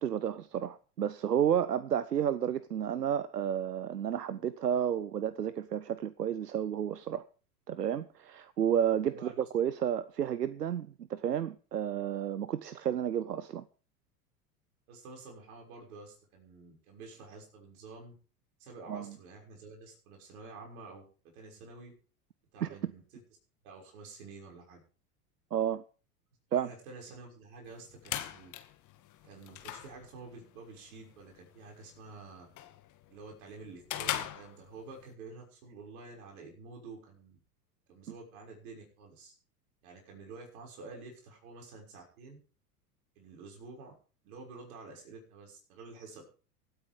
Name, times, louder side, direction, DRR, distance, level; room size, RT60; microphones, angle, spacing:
voice 1, 0.0-7.2 7.7-13.6 18.9-19.1 22.6-22.9 25.5-25.8 26.5-26.7, right 9 dB, 90° right, 0.7 m, -31 dB
voice 2, 9.0-9.5 14.9-18.1 18.6-21.0 21.3-21.9 22.5-23.0 23.6-24.8 26.5-28.5 29.2-32.5 33.1-37.4 37.9-39.3 39.8-42.4 43.2-43.9 44.2-46.2, right 3 dB, 60° right, 6.3 m, -49 dB
sound 1, 27.6-35.1, left 12 dB, 40° left, 2.0 m, -42 dB
24.0 x 9.1 x 3.6 m
figure-of-eight pair, 85°, 47 cm